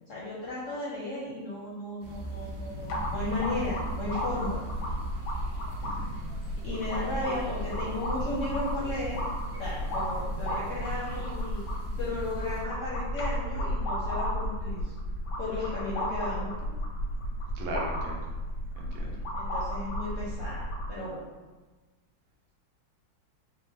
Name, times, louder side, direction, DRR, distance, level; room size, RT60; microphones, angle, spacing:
voice 1, 0.0-4.6 6.1-6.2 6.6-9.2 9.6-14.9 15.4-16.7 19.4-21.2, left 2 dB, 60° left, -6 dB, 0.8 m, -35 dB
sound 1, 2.0-12.6, equal, 65° right, 1.1 m, -41 dB
sound 2, 2.9-20.9, equal, 90° left, 1.5 m, -33 dB
voice 2, 5.8-6.1 15.6-15.7 17.5-18.3 18.8-19.2, right 1 dB, 85° right, -1 dB, 1.5 m, -38 dB
4.3 x 2.1 x 4.0 m, 1.3 s
omnidirectional pair, 2.1 m